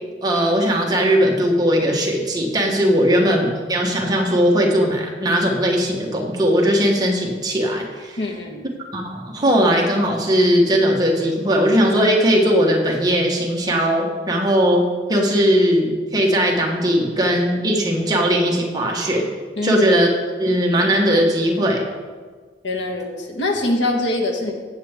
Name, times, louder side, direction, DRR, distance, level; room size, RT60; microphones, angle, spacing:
voice 1, 0.2-8.2 8.9-14.8 15.1-19.2 19.6-20.1 20.4-21.8, equal, 20° right, -1 dB, 1.5 m, -18 dB
voice 2, 8.2-8.6 19.6-19.8 22.6-24.5, left 2 dB, 80° left, 1 dB, 1.5 m, -23 dB
16.0 x 6.9 x 3.7 m, 1.5 s
head